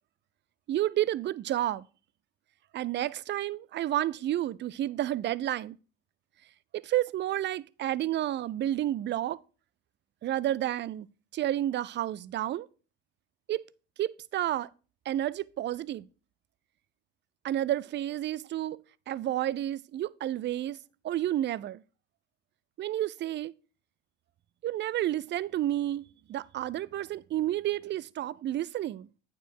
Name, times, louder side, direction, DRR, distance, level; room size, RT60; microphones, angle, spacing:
voice 1, 0.7-1.9 2.7-5.8 6.7-9.4 10.2-11.1 11.3-12.7 13.5-13.6 14.0-14.7 15.1-16.1 17.4-18.8 19.1-20.8 21.0-21.8 22.8-23.5 24.6-29.1, right 13 dB, 35° right, 0.4 m, -30 dB
8.9 x 4.7 x 4.7 m
hypercardioid pair, 60°, 33 cm